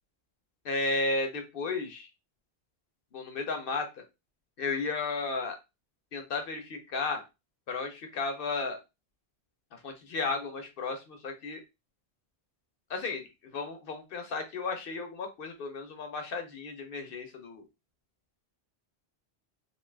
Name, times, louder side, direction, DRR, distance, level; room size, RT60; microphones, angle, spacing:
voice 1, 0.6-2.1 3.1-4.0 4.6-5.6 6.1-7.2 7.7-8.8 9.7-11.6 12.9-13.2 13.5-17.6, left 3 dB, 65° left, 5 dB, 0.7 m, -34 dB
2.7 x 2.3 x 3.2 m, 0.25 s
omnidirectional pair, 1.1 m